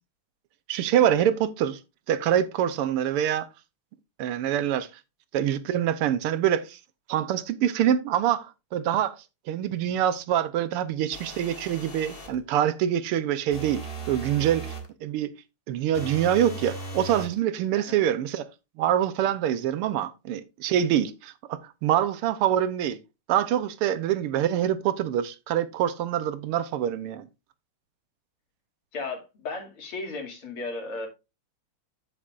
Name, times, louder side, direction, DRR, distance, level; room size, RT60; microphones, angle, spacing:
voice 1, 0.7-1.8 2.1-3.5 4.2-4.9 5.3-6.8 7.1-8.5 8.7-9.2 9.5-14.7 15.0-15.3 15.7-18.5 18.8-23.0 23.3-27.3, right 10 dB, 85° right, 1.7 m, -25 dB
sound 1, 11.1-12.4 13.5-14.9 15.9-17.4, right 3 dB, 30° left, 1.5 m, -38 dB
voice 2, 28.9-31.1, left 3 dB, 75° left, 3.4 m, -35 dB
9.7 x 8.5 x 2.5 m
omnidirectional pair, 2.4 m